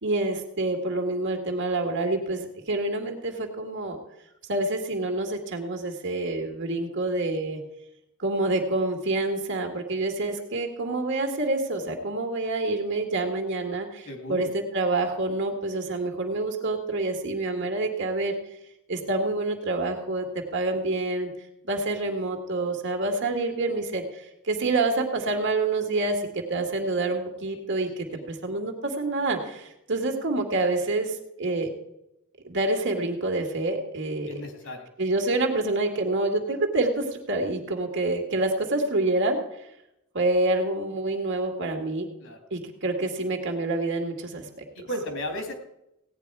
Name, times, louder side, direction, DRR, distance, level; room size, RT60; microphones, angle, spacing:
voice 1, 0.0-4.0 4.5-7.6 8.2-14.5 14.7-18.3 18.9-20.2 20.5-21.3 21.7-31.7 32.4-34.4 35.0-39.4 40.1-42.1 42.5-44.4, right 2 dB, 55° right, 4 dB, 1.9 m, -27 dB
voice 2, 14.1-14.5 28.0-28.2 34.3-34.9 42.2-42.4 44.7-45.5, equal, 60° left, 4 dB, 2.5 m, -35 dB
16.5 x 9.4 x 4.7 m, 0.84 s
head